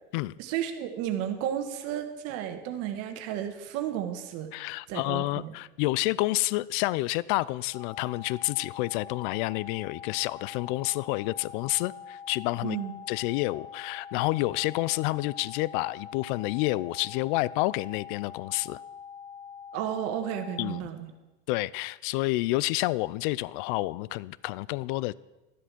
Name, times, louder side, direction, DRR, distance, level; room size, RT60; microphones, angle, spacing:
voice 1, 0.4-4.5 4.9-5.5 12.6-13.0 19.7-21.1, right 10 dB, 50° right, 1.5 m, -33 dB
voice 2, 4.5-12.8 13.1-18.8 20.6-20.9 21.5-25.1, left 19 dB, 50° left, 0.4 m, -29 dB
sound 1, 7.7-20.8, left 7 dB, 80° left, 1.0 m, -45 dB
13.0 x 7.8 x 6.1 m
hypercardioid pair, 115°, 32 cm